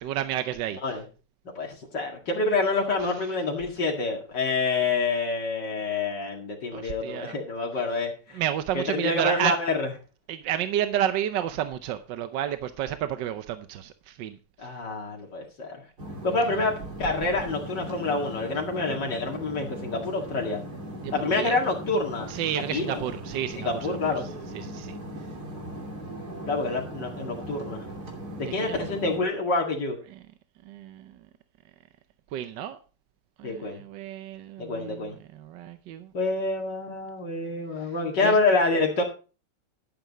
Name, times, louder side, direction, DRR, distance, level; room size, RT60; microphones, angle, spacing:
voice 1, 0.0-0.8 6.7-7.3 8.4-9.5 10.3-14.4 21.0-21.5 22.3-23.7 24.5-24.9 28.4-28.7 30.7-31.0 32.3-32.8 33.4-35.0 35.4-36.1 38.2-38.3, right 11 dB, 80° right, 10 dB, 1.4 m, -30 dB
voice 2, 0.7-1.1 1.6-8.4 8.7-9.9 14.6-15.8 16.2-20.6 21.1-22.3 22.7-23.0 23.5-24.3 26.5-27.9 28.4-30.0 33.4-33.8 34.6-35.2 36.1-39.0, left 3 dB, 70° left, 0 dB, 2.6 m, -27 dB
sound 1, 16.0-29.2, right 1 dB, 60° right, 3.6 m, -38 dB
11.5 x 9.6 x 4.1 m, 0.35 s
omnidirectional pair, 1.9 m